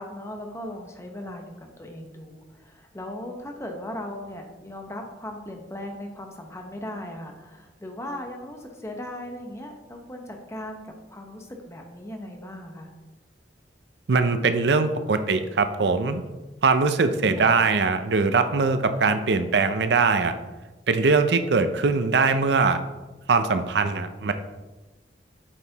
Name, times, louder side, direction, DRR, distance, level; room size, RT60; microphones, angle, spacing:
voice 1, 0.0-12.9 17.4-17.6, left 1 dB, 15° left, 3 dB, 0.9 m, -38 dB
voice 2, 14.1-16.2 16.6-20.3 20.9-22.8 23.3-24.3, right 4 dB, 70° right, 9 dB, 0.5 m, -21 dB
8.8 x 4.7 x 4.0 m, 1.1 s
head